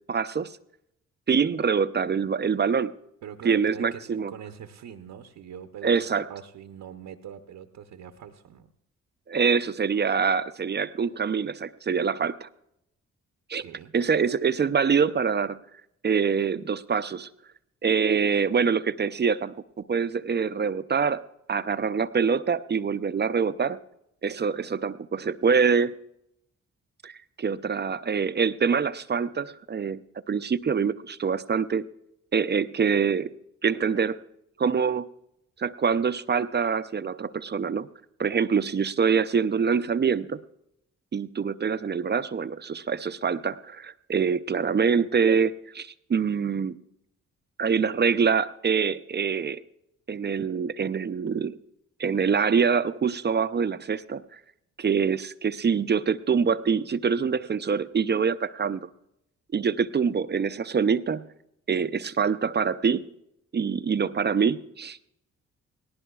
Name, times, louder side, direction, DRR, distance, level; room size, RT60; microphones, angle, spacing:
voice 1, 0.1-0.5 1.3-2.9 3.4-4.3 5.8-6.2 9.3-12.5 13.5-13.6 13.9-15.6 16.0-17.3 17.8-21.2 21.5-23.8 24.2-26.0 27.0-30.0 30.3-31.8 32.3-33.3 33.6-34.2 34.6-35.1 35.6-37.9 38.2-40.4 41.1-46.8 47.6-49.6 50.1-51.6 52.0-54.4 54.8-58.9 59.5-61.3 61.7-63.1 63.5-65.0, right 6 dB, 35° right, 13 dB, 0.5 m, -25 dB
voice 2, 3.2-8.7 13.6-13.9, right 9 dB, 70° right, 7 dB, 0.8 m, -42 dB
18.0 x 18.0 x 2.3 m, 0.79 s
supercardioid pair, 50°, 32 cm